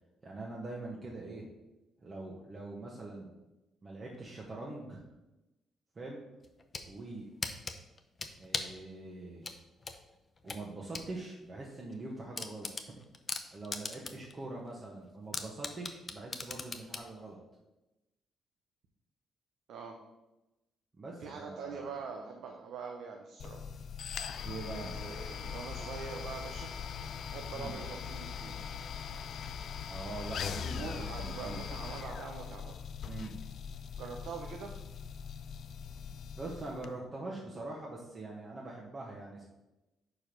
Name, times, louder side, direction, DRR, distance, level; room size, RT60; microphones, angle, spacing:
voice 1, 0.2-1.5 2.0-3.3 3.8-5.0 5.9-6.2 6.8-7.3 8.4-9.5 10.4-12.9 13.5-17.4 21.0-21.9 24.4-24.9 27.5-27.7 29.9-31.6 33.0-33.4 36.4-39.5, right 2 dB, 35° right, -3 dB, 1.3 m, -43 dB
sound 1, 6.4-6.9 7.4-8.8 9.4-11.1 11.5-11.6 11.9-12.0 12.4-14.3 14.7-14.8 15.3-17.1, left 4 dB, 30° left, 0.7 m, -38 dB
voice 2, 21.2-23.7 24.7-26.7 27.3-28.6 30.7-32.7 34.0-34.8, right 5 dB, 80° right, 2 dB, 0.8 m, -43 dB
sound 2, 23.4-36.9, left 7 dB, 65° left, 0.4 m, -41 dB
5.1 x 4.7 x 5.9 m, 0.98 s
cardioid pair, 90°, 0 cm